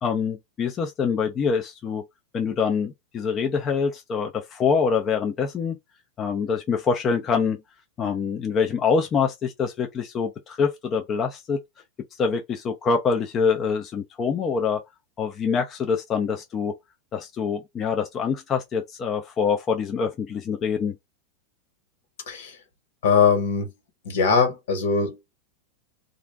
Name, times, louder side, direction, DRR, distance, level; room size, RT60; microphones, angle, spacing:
voice 1, 0.0-2.0 2.3-5.8 6.2-7.6 8.0-11.6 12.2-14.8 15.2-16.7 17.1-21.0, left 6 dB, 20° left, 0.4 m, -25 dB
voice 2, 23.0-23.7 24.0-25.1, left 5 dB, 70° left, 1.3 m, -21 dB
2.4 x 2.4 x 3.3 m
supercardioid pair, 165°, 0 cm